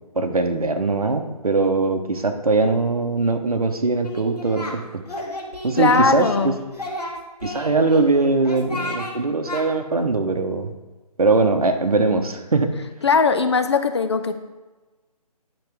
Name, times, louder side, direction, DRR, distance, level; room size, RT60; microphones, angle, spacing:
voice 1, 0.1-5.0 5.6-6.5 7.4-10.7 11.2-12.8, right 3 dB, 65° right, 6 dB, 1.1 m, -21 dB
Singing, 4.0-4.8 5.1-6.4 6.7-8.0 8.4-9.1 9.5-9.6, left 1 dB, 80° left, 2.0 m, -32 dB
voice 2, 5.8-6.5 13.0-14.3, left 4 dB, 45° left, 8 dB, 0.6 m, -19 dB
10.5 x 6.0 x 3.5 m, 1.2 s
figure-of-eight pair, 150°, 20 cm